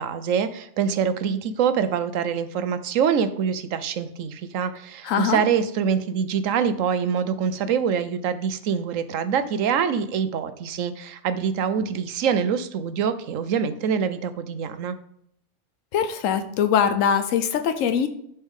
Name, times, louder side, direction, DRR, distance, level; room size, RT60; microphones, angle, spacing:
voice 1, 0.0-15.0, right 7 dB, 80° right, 11 dB, 1.1 m, -25 dB
voice 2, 5.0-5.4 15.9-18.1, left 8 dB, 80° left, 8 dB, 1.1 m, -22 dB
10.5 x 4.5 x 3.6 m, 0.71 s
omnidirectional pair, 1.3 m